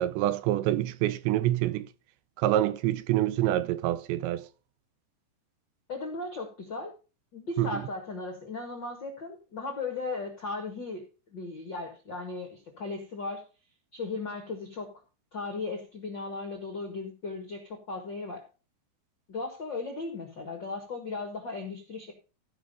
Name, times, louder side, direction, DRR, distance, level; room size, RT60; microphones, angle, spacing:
voice 1, 0.0-1.9 2.4-4.4 7.6-7.8, right 13 dB, 90° right, 3.0 m, -26 dB
voice 2, 5.9-6.9 7.3-11.0 11.3-13.4 13.9-14.9 15.3-18.4 19.3-22.1, left 3 dB, 60° left, 1.1 m, -36 dB
15.5 x 5.4 x 5.2 m
omnidirectional pair, 5.0 m